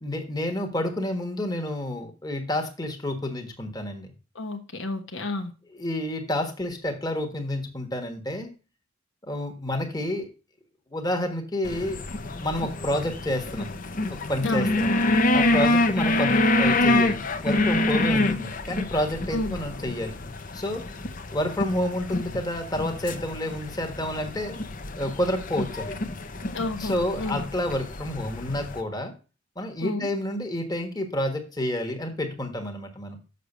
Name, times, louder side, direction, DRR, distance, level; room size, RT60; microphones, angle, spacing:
voice 1, 0.0-4.1 5.7-8.5 9.2-10.3 10.9-12.0 12.4-13.7 14.1-14.9 15.3-17.2 17.4-20.1 20.5-20.8 21.3-24.6 25.0-25.9 26.8-29.1 29.6-33.2, left 1 dB, 20° left, 1.4 m, -29 dB
voice 2, 4.3-5.5 14.4-14.8 15.6-15.7 19.3-19.5 26.5-27.4 29.8-30.0, left 2 dB, 65° left, 1.2 m, -30 dB
sound 1, 11.7-28.8, left 2 dB, 40° left, 0.8 m, -26 dB
6.7 x 6.5 x 6.7 m
head